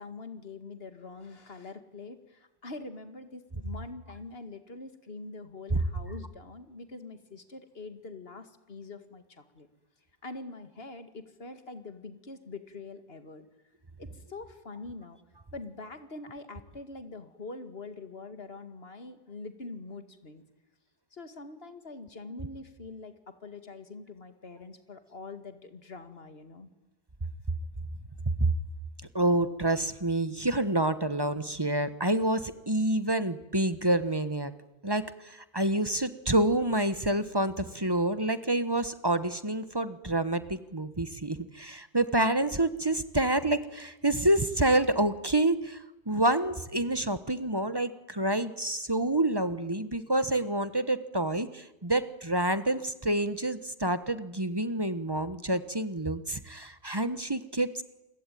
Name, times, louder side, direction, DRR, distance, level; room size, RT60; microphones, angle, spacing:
voice 1, 0.0-9.7 10.2-13.5 14.0-15.2 15.5-20.4 21.1-26.7, left 3 dB, 60° left, 9 dB, 2.5 m, -44 dB
voice 2, 29.1-34.5 34.8-57.8, right 1 dB, 20° right, 13 dB, 1.3 m, -28 dB
28.5 x 22.0 x 9.3 m, 0.94 s
omnidirectional pair, 1.1 m